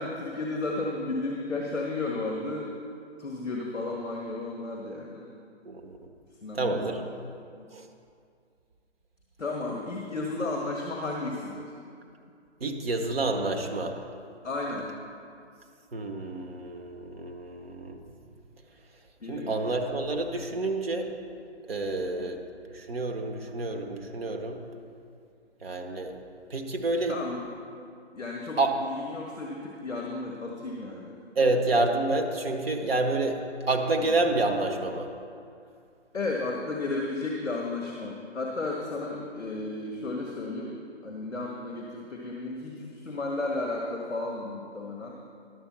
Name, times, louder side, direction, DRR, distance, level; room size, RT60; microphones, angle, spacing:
voice 1, 0.0-2.7 3.2-5.3 6.4-7.2 7.5-7.7 9.4-11.7 14.4-14.9 19.2-19.6 22.1-22.3 27.1-27.4 28.1-31.2 34.0-34.2 36.1-40.8 41.0-45.1, left 2 dB, 5° left, -16 dB, 0.4 m, -33 dB
voice 2, 5.6-6.0 6.5-7.0 7.7-7.8 12.6-13.9 15.9-18.0 19.3-21.1 21.7-22.4 22.7-24.6 25.6-26.1 26.5-27.1 28.6-28.7 31.4-33.4 33.7-35.1, right 2 dB, 60° right, 4 dB, 1.3 m, -28 dB
11.0 x 7.2 x 5.9 m, 2.3 s
figure-of-eight pair, 135°, 34 cm